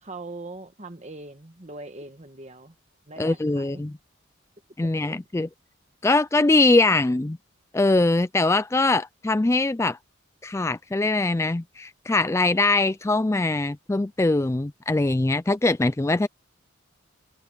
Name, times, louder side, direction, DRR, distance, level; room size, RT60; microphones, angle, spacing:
voice 1, 0.0-2.8 3.1-3.8 4.8-5.2, right 2 dB, 30° right, 1.3 m, -41 dB
voice 2, 3.2-3.9 4.8-5.5 6.0-7.4 7.7-10.0 10.4-16.3, left 2 dB, 15° left, 0.3 m, -22 dB
head